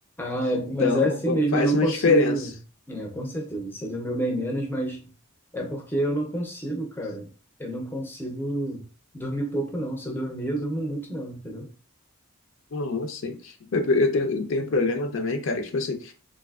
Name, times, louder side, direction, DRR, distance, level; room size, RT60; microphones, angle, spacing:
voice 1, 0.2-2.4 2.9-5.0 5.5-7.3 7.6-8.8 9.1-11.7, right 1 dB, 10° left, 0.4 m, -28 dB
voice 2, 0.8-2.5 12.7-16.1, left 3 dB, 60° left, 0.5 m, -25 dB
3.3 x 2.5 x 2.3 m
head